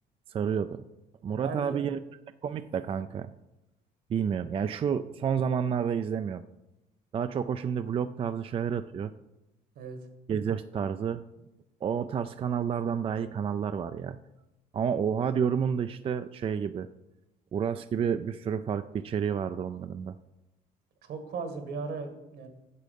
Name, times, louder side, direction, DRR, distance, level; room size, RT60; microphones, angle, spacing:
voice 1, 0.3-0.8 1.2-2.0 2.4-3.3 4.1-6.4 7.1-9.1 10.3-11.2 11.8-14.2 14.7-16.9 17.5-20.2, right 7 dB, 35° right, 11 dB, 0.4 m, -30 dB
voice 2, 1.3-1.9 9.7-10.0 21.0-22.5, right 4 dB, 70° right, 7 dB, 1.7 m, -37 dB
8.4 x 7.4 x 5.2 m, 0.94 s
cardioid pair, 110°, 17 cm